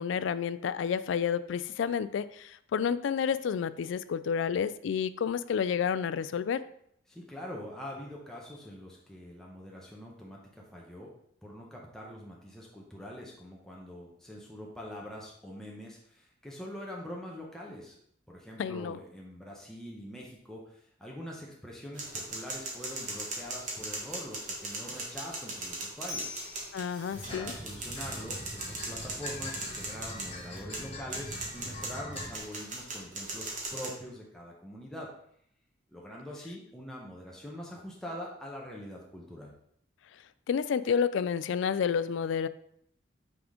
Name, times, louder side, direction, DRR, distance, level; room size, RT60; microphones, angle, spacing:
voice 1, 0.0-6.6 18.6-19.0 26.7-27.5 40.5-42.5, left 7 dB, 70° left, 15 dB, 0.3 m, -30 dB
voice 2, 7.1-11.1 11.4-18.0 18.3-26.3 27.3-35.1 35.9-39.5, equal, 5° left, -3 dB, 0.9 m, -44 dB
sound 1, 21.9-33.9, right 2 dB, 40° right, 1.5 m, -39 dB
sound 2, 27.1-32.4, left 1 dB, 30° left, 1.4 m, -43 dB
6.0 x 3.7 x 4.9 m, 0.69 s
head